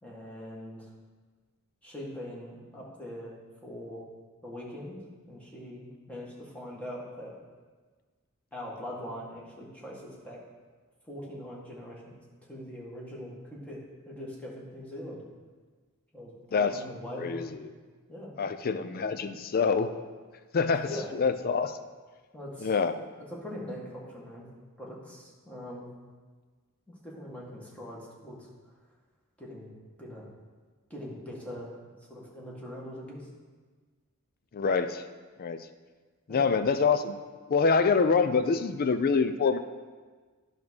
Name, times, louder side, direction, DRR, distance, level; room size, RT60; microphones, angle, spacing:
voice 1, 0.0-0.8 1.8-3.3 3.6-4.0 4.4-5.0 5.3-7.3 8.5-10.4 11.1-15.2 16.1-17.5 18.1-18.3 20.9-21.1 22.3-22.7 23.2-24.5 24.8-25.9 26.9-28.5 29.4-29.7 30.0-30.3 30.9-31.8 32.1-33.3 36.3-36.5, equal, 5° left, -5 dB, 1.6 m, -42 dB
voice 2, 16.5-16.8 17.2-17.7 18.4-19.9 20.5-20.9 21.2-21.8 22.6-22.9 34.5-35.0 35.4-35.7 36.3-37.2 37.5-39.6, left 5 dB, 45° left, 10 dB, 0.4 m, -26 dB
10.5 x 3.6 x 6.2 m, 1.4 s
head